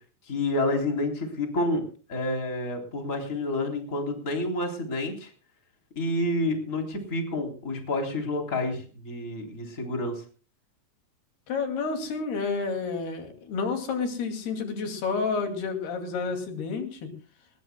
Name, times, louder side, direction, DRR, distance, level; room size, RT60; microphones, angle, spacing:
voice 1, 0.3-1.8 2.1-5.3 6.0-10.2, left 2 dB, 20° left, 3 dB, 3.5 m, -29 dB
voice 2, 11.5-17.1, left 4 dB, 75° left, 5 dB, 4.5 m, -30 dB
21.0 x 20.5 x 2.2 m, 0.38 s
omnidirectional pair, 4.6 m